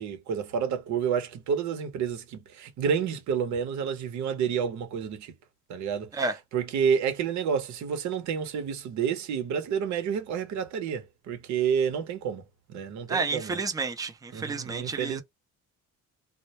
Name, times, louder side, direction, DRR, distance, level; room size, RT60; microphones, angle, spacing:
voice 1, 0.0-5.3 5.7-6.1 6.5-12.4 12.7-13.6 14.3-15.2, right 7 dB, 65° right, 0.8 m, -29 dB
voice 2, 13.1-15.2, right 4 dB, 10° right, 0.4 m, -30 dB
2.1 x 2.1 x 2.8 m
cardioid pair, 140°, 31 cm